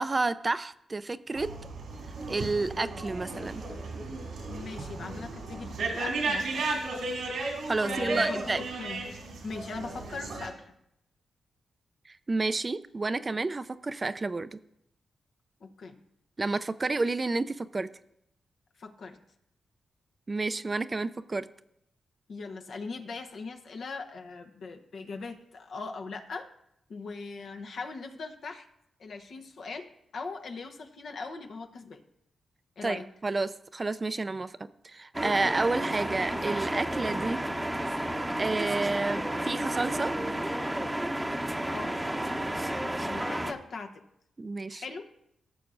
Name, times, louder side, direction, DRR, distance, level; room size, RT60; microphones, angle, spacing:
voice 1, 0.0-1.5 2.3-3.6 7.7-8.6 12.1-14.6 16.4-17.9 20.3-21.5 32.8-34.6 34.8-37.4 38.4-40.1 44.4-44.8, right 3 dB, 35° right, 13 dB, 0.4 m, -30 dB
sound 1, 1.4-10.5, right 3 dB, 90° right, 2.5 m, -34 dB
voice 2, 4.5-6.7 7.8-9.0 9.4-10.5 15.6-16.0 18.8-19.2 22.3-26.5 26.9-28.6 29.0-32.0 32.8-33.0 41.7-41.9 43.0-44.0 44.7-45.1, left 4 dB, 70° left, 4 dB, 0.9 m, -40 dB
sound 2, 35.1-43.5, right 1 dB, 15° right, 0.8 m, -31 dB
16.0 x 6.9 x 2.6 m, 0.77 s
cardioid pair, 60°, 0 cm